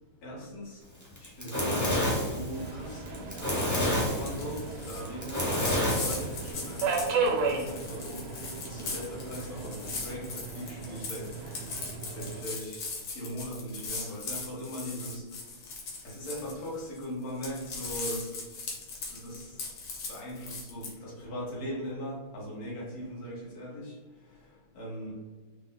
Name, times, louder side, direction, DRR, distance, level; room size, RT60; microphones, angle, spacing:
voice 1, 0.2-0.8 1.2-6.9 7.2-8.3 8.6-11.3 12.2-12.9 13.1-15.2 16.0-18.3 19.2-19.5 20.1-23.9 24.7-25.1, equal, 90° left, -6 dB, 2.2 m, -39 dB
Fire, 1.0-6.5, equal, 15° left, 0.5 m, -29 dB
Subway metro underground, 2.5-12.4, right 4 dB, 75° right, 1.4 m, -35 dB
sound 1, 2.8-3.1 3.3-17.0 17.3-20.9, left 4 dB, 70° left, 1.7 m, -40 dB
4.6 x 2.1 x 4.0 m, 1.3 s
omnidirectional pair, 2.4 m